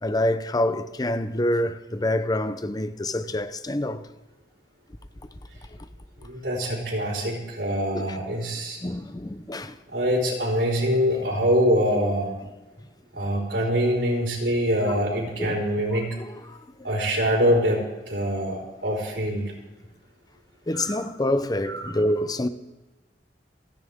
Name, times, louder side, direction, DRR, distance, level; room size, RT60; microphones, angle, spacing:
voice 1, 0.0-4.1 7.9-8.2 8.8-9.8 14.8-15.0 15.4-15.6 16.2-16.6 20.7-22.5, left 1 dB, 20° left, 0.7 m, -26 dB
voice 2, 6.2-8.8 9.9-12.3 13.1-16.2 16.8-19.5 20.7-21.0 21.7-21.9, equal, 85° right, 4.5 m, -24 dB
28.5 x 10.0 x 3.7 m
head